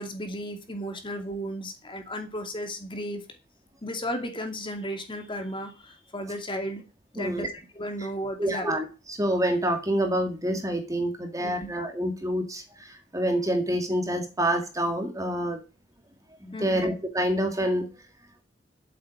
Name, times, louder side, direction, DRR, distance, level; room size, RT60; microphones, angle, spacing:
voice 1, 0.0-3.2 3.8-6.8 7.1-7.5 7.8-8.7 11.4-11.7 16.5-16.9, equal, 30° left, 5 dB, 2.5 m, -34 dB
voice 2, 7.2-7.5 8.4-8.8 9.2-15.6 16.4-17.9, right 1 dB, 20° right, 5 dB, 2.3 m, -27 dB
8.5 x 8.3 x 8.8 m, 0.31 s
head